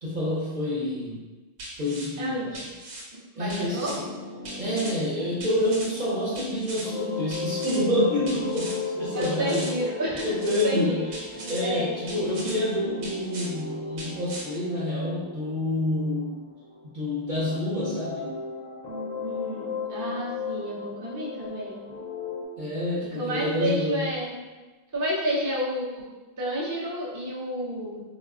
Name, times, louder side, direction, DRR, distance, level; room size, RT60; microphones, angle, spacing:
voice 1, 0.0-1.2 1.8-2.5 3.3-4.0 4.6-9.8 10.2-16.5 16.9-18.4 22.6-24.1, left 1 dB, 55° right, -8 dB, 0.7 m, -28 dB
sound 1, 1.6-2.1 2.5-3.0 3.5-4.0 4.4-4.9 5.4-5.9 6.3-6.8 7.3-7.8 8.3-8.8 9.2-9.7 10.2-10.7 11.1-11.6 12.1-12.6 13.0-13.5 14.0-14.4, right 2 dB, 85° right, 0.9 m, -39 dB
voice 2, 2.2-2.5 3.1-3.9 9.2-10.3 10.6-11.0 11.6-12.0 19.2-21.8 23.1-24.4 24.9-26.0 26.4-28.0, equal, 25° right, -6 dB, 0.4 m, -30 dB
sound 2, 3.6-16.9 17.3-22.4, left 4 dB, 55° left, 0.5 m, -37 dB
3.9 x 2.2 x 2.3 m, 1.2 s
omnidirectional pair, 1.1 m